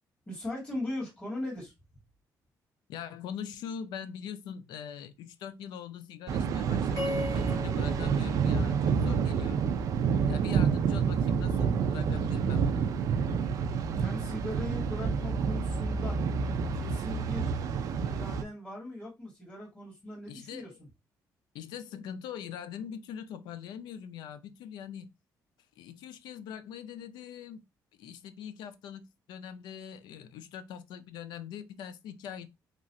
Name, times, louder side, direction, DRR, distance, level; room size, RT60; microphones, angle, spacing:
voice 1, 0.3-1.7 14.0-16.2 16.7-17.5 18.0-20.9, left 1 dB, 20° left, 1.8 m, -39 dB
voice 2, 2.9-9.7 10.3-12.9 20.3-20.8 21.5-25.1 25.8-27.6 28.0-32.5, left 8 dB, 90° left, 0.4 m, -42 dB
Thunder, 6.3-18.4, right 6 dB, 55° right, 0.3 m, -28 dB
sound 1, 7.0-9.3, left 3 dB, 60° left, 1.6 m, -38 dB
3.0 x 2.4 x 2.6 m
cardioid pair, 150°, 7 cm